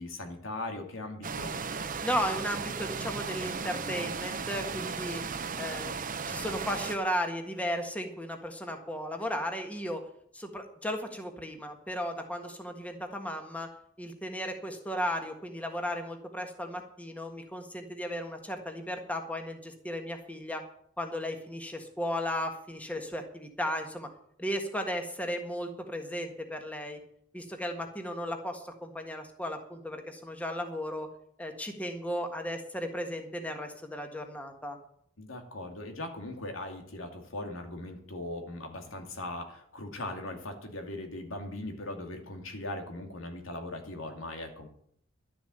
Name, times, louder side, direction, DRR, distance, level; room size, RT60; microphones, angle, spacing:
voice 1, 0.0-1.6 35.2-44.7, left 1 dB, 90° left, 4 dB, 2.5 m, -39 dB
sound 1, 1.2-7.0, right 5 dB, 45° right, 0.8 m, -36 dB
voice 2, 2.0-5.2 5.6-10.0 10.3-13.7 14.0-20.6 21.0-24.1 24.4-27.0 27.3-31.1 31.4-34.8, equal, 5° left, 4 dB, 1.5 m, -35 dB
12.0 x 7.2 x 8.9 m, 0.66 s
head